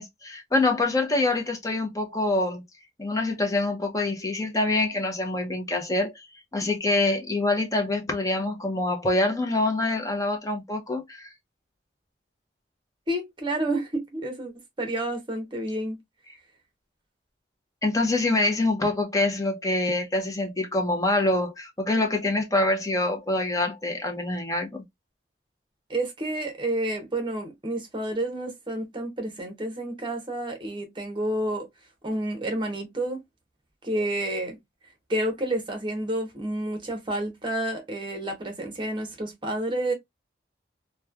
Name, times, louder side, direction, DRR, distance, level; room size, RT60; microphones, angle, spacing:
voice 1, 0.0-2.6 3.0-6.2 6.5-11.3 17.8-24.8, left 2 dB, 20° left, 0.6 m, -25 dB
voice 2, 13.1-14.5 14.8-16.0 25.9-31.7 32.0-33.2 33.8-34.6 35.1-39.9, right 1 dB, 25° right, 0.8 m, -29 dB
3.0 x 2.2 x 2.3 m
head